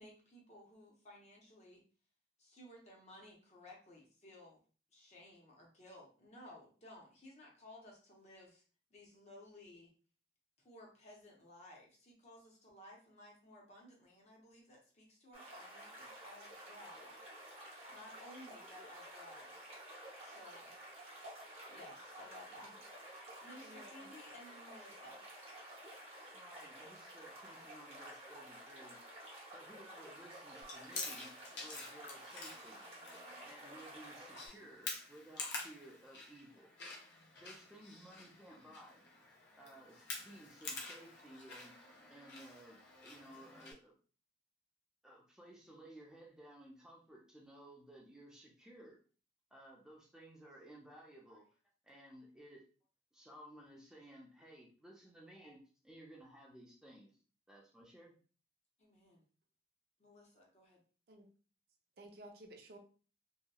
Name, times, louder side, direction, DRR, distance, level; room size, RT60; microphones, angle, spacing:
voice 1, 0.0-1.8 2.4-4.6 4.9-8.6 8.9-9.9 10.6-17.2 17.9-19.5 20.2-20.7 21.7-22.7 23.4-25.2 58.8-59.2 60.0-60.8, left 1 dB, 35° left, -1 dB, 0.7 m, -57 dB
sound 1, 15.3-34.5, right 1 dB, 35° right, 0.8 m, -52 dB
voice 2, 23.6-24.1 61.1-61.3 62.0-62.8, right 1 dB, 55° right, 4 dB, 0.4 m, -55 dB
voice 3, 26.3-29.0 29.5-31.3 31.6-32.8 33.4-36.7 37.3-39.0 39.6-41.8 42.1-44.0 45.0-49.0 49.5-51.5 51.8-52.6 53.1-57.1 57.5-58.2, right 1 dB, 5° right, -3 dB, 0.5 m, -57 dB
Chewing mastication, 30.6-43.7, left 3 dB, 75° left, 0.7 m, -48 dB
2.7 x 2.2 x 2.2 m, 0.38 s
head